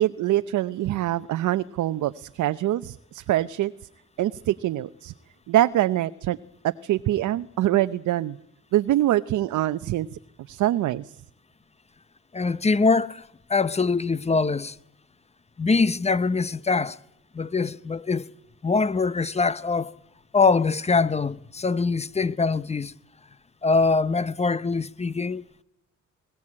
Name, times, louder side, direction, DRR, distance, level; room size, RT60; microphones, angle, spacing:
voice 1, 0.0-3.7 4.2-5.1 5.5-6.4 6.6-8.4 8.7-10.2 10.5-11.1, right 14 dB, 75° right, 0.8 m, -24 dB
voice 2, 12.3-13.2 13.5-14.7 15.6-17.0 17.3-18.3 18.6-19.9 20.3-22.9 23.6-25.4, left 4 dB, 20° left, 0.9 m, -23 dB
21.5 x 18.0 x 8.6 m
cardioid pair, 90°, 30 cm